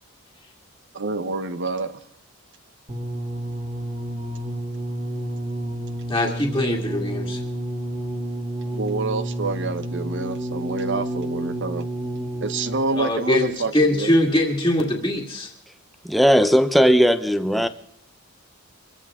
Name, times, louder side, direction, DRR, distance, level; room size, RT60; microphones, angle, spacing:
voice 1, 0.9-2.0 8.7-11.9 12.4-14.1, right 3 dB, 55° right, 0.9 m, -27 dB
sound 1, 2.9-13.0 13.8-13.9, right 1 dB, 25° right, 2.8 m, -30 dB
voice 2, 6.1-7.4 12.9-15.5, left 1 dB, 15° left, 2.0 m, -22 dB
voice 3, 16.0-17.7, equal, ahead, 0.7 m, -17 dB
24.5 x 15.0 x 3.7 m
head